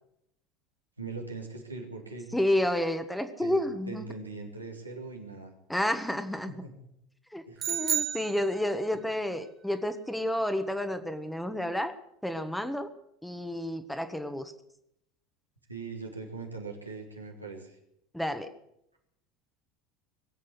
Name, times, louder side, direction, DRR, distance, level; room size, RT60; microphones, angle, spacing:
voice 1, 1.0-2.3 3.4-3.6 3.9-5.5 6.6-6.9 7.5-7.7 15.7-17.8, right 4 dB, 90° right, 1 dB, 2.3 m, -41 dB
voice 2, 2.3-4.1 5.7-6.6 7.3-11.9 12.2-12.9 13.2-14.5 18.1-18.5, left 1 dB, 5° left, 9 dB, 1.5 m, -30 dB
sound 1, 7.6-9.0, right 9 dB, 35° right, 1.2 m, -31 dB
20.0 x 8.4 x 8.2 m, 0.77 s
figure-of-eight pair, 75°, 0 cm